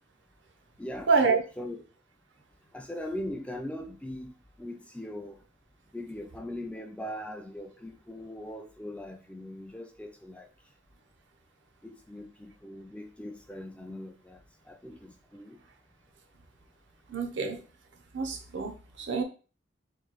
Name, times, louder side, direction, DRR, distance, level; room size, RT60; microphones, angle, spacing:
voice 1, 1.1-1.4 17.1-17.6 18.1-19.2, right 4 dB, 75° right, 0.7 m, -27 dB
voice 2, 2.7-5.4 5.9-10.5 11.8-15.6, left 1 dB, 5° left, 0.3 m, -40 dB
3.1 x 2.7 x 4.0 m
head